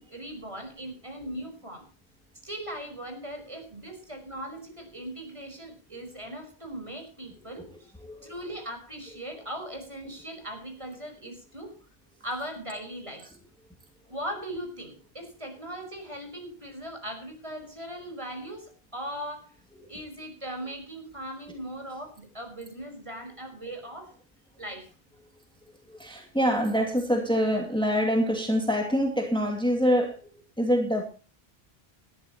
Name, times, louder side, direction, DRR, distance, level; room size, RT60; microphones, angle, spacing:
voice 1, 0.0-1.9 2.4-7.9 8.2-11.7 12.2-13.3 14.1-19.6 19.9-24.2 24.6-24.9, right 1 dB, 30° right, 5.0 m, -39 dB
voice 2, 8.0-8.3 25.9-31.0, equal, 5° left, 2.5 m, -25 dB
19.5 x 13.0 x 3.0 m
omnidirectional pair, 1.0 m